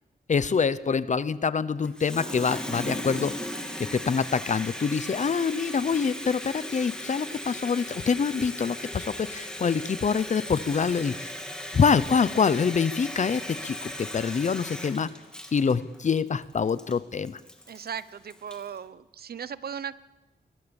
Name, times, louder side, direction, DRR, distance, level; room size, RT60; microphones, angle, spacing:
voice 1, 0.3-3.4 3.8-11.3 11.7-15.1 15.5-17.4, left 6 dB, 45° left, 16 dB, 0.8 m, -25 dB
Water tap faucet, 1.8-18.7, left 1 dB, 5° left, 2.5 m, -37 dB
voice 2, 17.7-20.0, right 8 dB, 65° right, 16 dB, 0.8 m, -37 dB
23.0 x 22.0 x 7.1 m, 1.1 s
wide cardioid pair, 170°, 17 cm